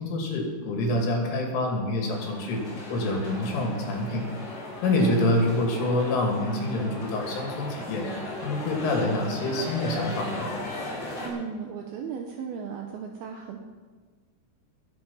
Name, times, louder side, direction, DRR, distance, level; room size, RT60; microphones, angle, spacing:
voice 1, 0.0-2.6 2.9-4.2 4.8-8.0 8.4-10.5, left 1 dB, 85° left, 1 dB, 5.0 m, -26 dB
sound 1, 2.1-11.3, left 1 dB, 35° left, 3.8 m, -37 dB
voice 2, 11.2-13.6, right 6 dB, 75° right, 3 dB, 2.3 m, -36 dB
20.5 x 8.1 x 5.6 m, 1.5 s
omnidirectional pair, 5.5 m